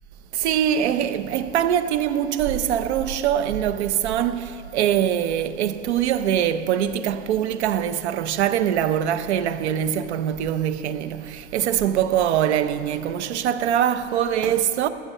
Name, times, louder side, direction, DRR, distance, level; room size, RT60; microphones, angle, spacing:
voice 1, 0.3-14.9, right 10 dB, 65° right, 0.8 m, -23 dB
15.0 x 12.0 x 5.5 m
supercardioid pair, 150°, 36 cm